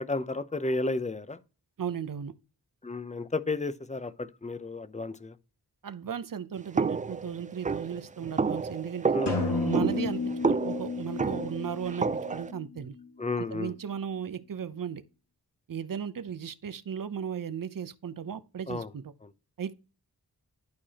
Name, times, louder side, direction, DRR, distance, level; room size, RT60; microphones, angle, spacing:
voice 1, 0.0-1.4 2.8-5.3 9.1-9.4 9.9-10.0 13.2-13.7 18.7-18.9 19.2-19.3, left 3 dB, 20° left, 0.8 m, -32 dB
voice 2, 1.8-2.3 5.8-9.2 9.6-13.0 13.4-15.0 15.7-19.1 19.6-19.7, right 8 dB, 55° right, 0.8 m, -36 dB
sound 1, 6.8-12.5, right 4 dB, 20° right, 0.4 m, -30 dB
sound 2, 9.3-13.1, left 3 dB, 85° left, 1.6 m, -32 dB
11.5 x 4.7 x 2.9 m
cardioid pair, 40°, 40 cm